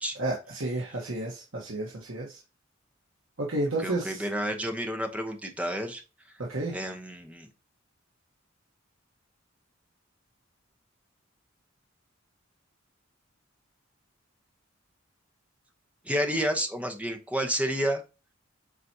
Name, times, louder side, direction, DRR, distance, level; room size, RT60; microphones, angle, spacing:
voice 1, 0.2-2.4 3.4-4.2 6.5-6.8, right 2 dB, 75° right, -2 dB, 1.5 m, -31 dB
voice 2, 3.8-6.0 6.7-7.5 16.0-18.0, equal, 5° right, 4 dB, 1.1 m, -30 dB
7.9 x 4.3 x 2.9 m, 0.29 s
head